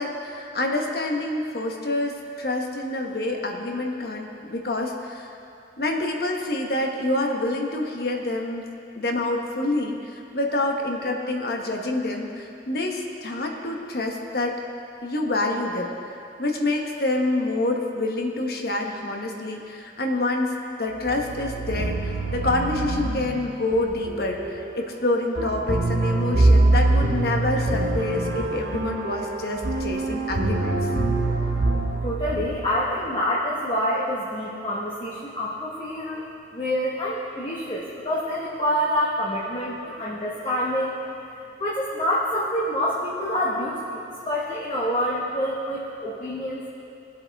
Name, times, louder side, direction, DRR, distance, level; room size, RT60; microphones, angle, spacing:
voice 1, 0.0-5.3 5.8-8.7 8.9-14.6 15.0-30.8, left 2 dB, 60° left, 1 dB, 1.2 m, -27 dB
sound 1, 21.0-33.0, right 2 dB, 70° right, 1.0 m, -24 dB
voice 2, 32.0-36.2 36.5-41.0 41.6-46.7, equal, 30° left, -6 dB, 1.3 m, -27 dB
21.0 x 8.0 x 3.5 m, 2.7 s
head